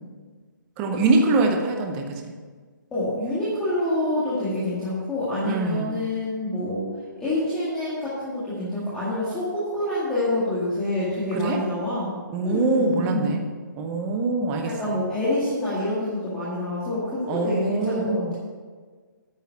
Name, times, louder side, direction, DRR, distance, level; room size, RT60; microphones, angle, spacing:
voice 1, 0.8-2.3 5.4-6.0 11.3-11.6 12.3-13.4 13.8-15.0 17.3-18.3, right 3 dB, 10° right, 3 dB, 0.6 m, -24 dB
voice 2, 2.9-6.9 7.2-12.1 12.4-13.4 14.6-18.3, left 1 dB, 5° left, -12 dB, 1.9 m, -27 dB
9.3 x 7.3 x 6.7 m, 1.5 s
hypercardioid pair, 170°, 11 cm